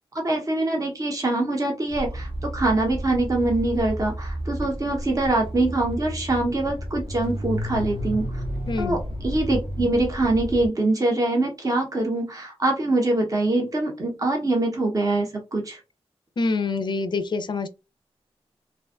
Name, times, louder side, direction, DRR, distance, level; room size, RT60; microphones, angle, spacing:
voice 1, 0.1-8.3 8.8-15.8, right 2 dB, 35° right, 0.7 m, -24 dB
sound 1, 1.9-10.7, equal, 65° right, 0.8 m, -32 dB
voice 2, 16.4-17.7, left 3 dB, 45° left, 0.4 m, -26 dB
2.5 x 2.2 x 2.3 m
wide cardioid pair, 95°, 11 cm